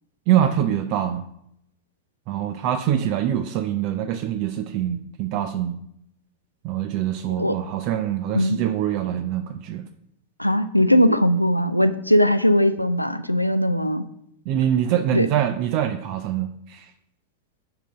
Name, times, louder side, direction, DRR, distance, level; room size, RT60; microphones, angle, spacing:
voice 1, 0.3-1.2 2.3-5.8 6.6-9.8 14.5-16.9, right 10 dB, 45° right, 10 dB, 0.5 m, -24 dB
voice 2, 10.4-14.1 15.1-15.3, equal, 90° left, 11 dB, 0.4 m, -19 dB
10.5 x 3.8 x 5.6 m, 0.76 s
figure-of-eight pair, 90°, 0 cm